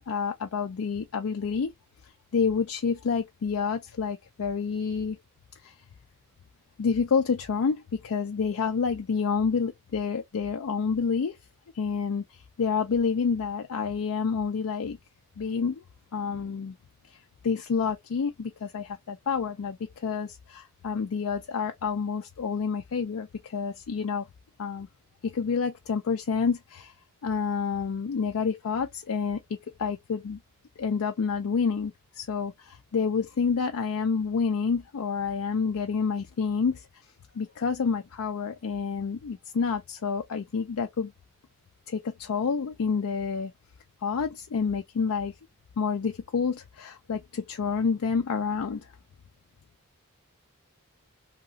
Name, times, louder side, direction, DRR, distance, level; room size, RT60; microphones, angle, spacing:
voice 1, 0.0-1.7 2.3-5.2 5.6-5.7 6.8-11.4 11.7-15.0 15.4-15.8 16.1-16.8 17.1-17.2 17.4-24.3 24.6-24.9 25.2-26.9 27.2-29.4 29.8-30.4 30.8-36.9 37.3-41.1 41.9-43.5 44.0-45.3 45.8-48.9, left 5 dB, 75° left, 0.4 m, -28 dB
2.8 x 2.4 x 2.7 m
head